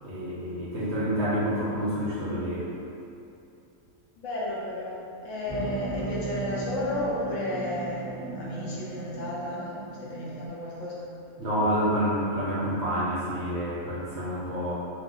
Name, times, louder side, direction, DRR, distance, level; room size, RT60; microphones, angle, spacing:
voice 1, 0.0-2.8 11.4-14.7, equal, 60° right, -9 dB, 0.7 m, -28 dB
voice 2, 4.2-11.1, left 1 dB, 70° left, -6 dB, 0.8 m, -33 dB
sound 1, 5.5-10.5, right 3 dB, 20° left, 0.4 m, -36 dB
2.6 x 2.0 x 3.5 m, 2.7 s
omnidirectional pair, 1.5 m